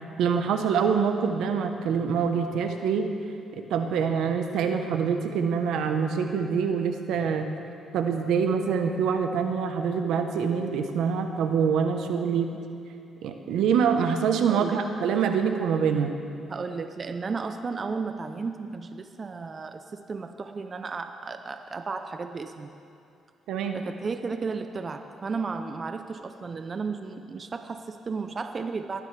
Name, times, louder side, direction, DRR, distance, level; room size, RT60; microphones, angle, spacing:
voice 1, 0.2-3.1 3.7-7.5 7.9-12.6 13.2-16.2 23.5-23.8, right 6 dB, 80° right, 6 dB, 1.0 m, -25 dB
voice 2, 14.5-14.8 16.5-22.7 23.7-29.0, right 4 dB, 40° right, 8 dB, 0.6 m, -34 dB
19.0 x 13.0 x 3.4 m, 2.7 s
cardioid pair, 90°, 0 cm